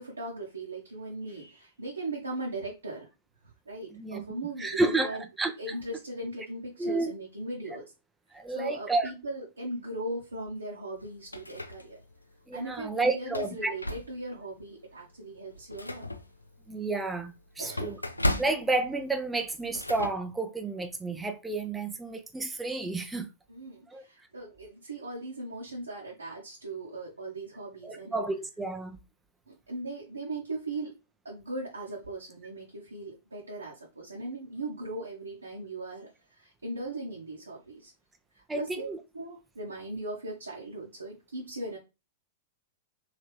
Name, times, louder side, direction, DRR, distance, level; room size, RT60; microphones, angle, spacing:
voice 1, 0.0-3.1 3.4-5.2 5.6-7.8 8.5-12.0 12.5-16.0 17.6-18.0 23.5-28.2 29.5-31.0 31.2-37.9 38.3-41.8, right 2 dB, 80° right, 0.8 m, -38 dB
voice 2, 3.9-4.2 4.6-5.5 6.8-7.1 8.3-9.1 12.5-13.7 16.7-18.0 18.4-23.3 23.9-24.0 27.8-29.0 38.5-39.0, right 3 dB, 10° right, 0.5 m, -31 dB
sound 1, 11.0-12.2 12.7-12.8 13.2-14.5 14.9-15.0 15.4-20.1, left 1 dB, 85° left, 0.4 m, -35 dB
3.3 x 2.8 x 3.1 m
figure-of-eight pair, 100°, 0 cm